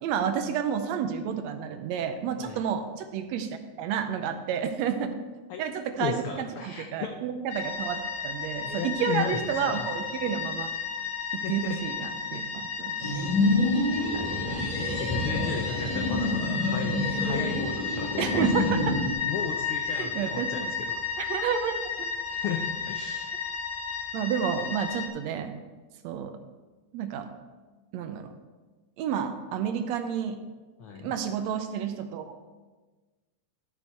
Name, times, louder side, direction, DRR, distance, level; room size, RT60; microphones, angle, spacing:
voice 1, 0.0-5.1 5.6-10.7 11.3-12.9 14.1-14.3 18.2-19.0 19.9-20.7 21.2-22.1 24.1-25.5 26.0-26.3 26.9-27.3 27.9-28.3 29.0-30.4 31.0-32.4, right 8 dB, 75° right, 7 dB, 1.8 m, -30 dB
voice 2, 6.0-7.1 8.6-9.9 11.4-11.8 14.7-18.4 19.2-21.0 22.3-23.3 30.8-31.1, left 6 dB, 80° left, 4 dB, 1.2 m, -35 dB
sound 1, 7.5-25.1, left 6 dB, 55° left, 1.5 m, -33 dB
sound 2, 13.0-19.1, left 1 dB, 15° left, 1.4 m, -27 dB
12.5 x 6.2 x 4.5 m, 1.3 s
omnidirectional pair, 3.3 m